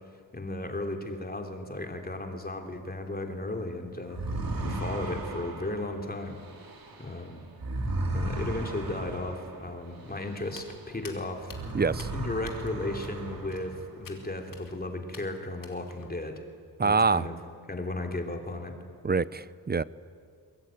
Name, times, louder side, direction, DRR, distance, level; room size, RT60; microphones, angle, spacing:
voice 1, 0.3-4.2 4.6-6.4 7.0-7.4 8.1-11.5 12.1-16.4 16.8-17.4 17.7-18.7, left 2 dB, 20° left, 4 dB, 3.2 m, -35 dB
sound 1, 4.1-11.0 11.3-14.0, right 2 dB, 55° right, 3.7 m, -36 dB
Walk footsteps, 10.5-16.1, left 4 dB, 55° left, 3.0 m, -50 dB
voice 2, 11.7-12.1 16.8-17.3 19.0-19.8, right 4 dB, 25° right, 18 dB, 0.6 m, -25 dB
23.0 x 21.5 x 9.2 m, 2.2 s
cardioid pair, 95°, 40 cm